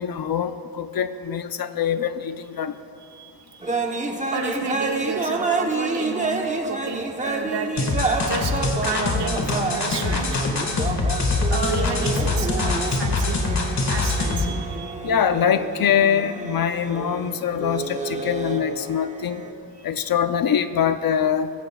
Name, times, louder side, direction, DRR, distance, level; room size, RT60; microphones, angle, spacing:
voice 1, 0.0-2.7 15.0-19.4 19.8-21.5, left 8 dB, 55° left, 10 dB, 0.6 m, -23 dB
voice 2, 3.1-3.7 4.0-10.4 11.5-13.5 13.9-14.9, right 4 dB, 65° right, 2 dB, 1.6 m, -31 dB
sound 1, 3.6-19.5, right 3 dB, 15° right, 0.9 m, -29 dB
sound 2, 7.8-14.5, left 3 dB, 40° left, 1.6 m, -24 dB
21.0 x 16.0 x 2.3 m, 2.6 s
wide cardioid pair, 170°, 44 cm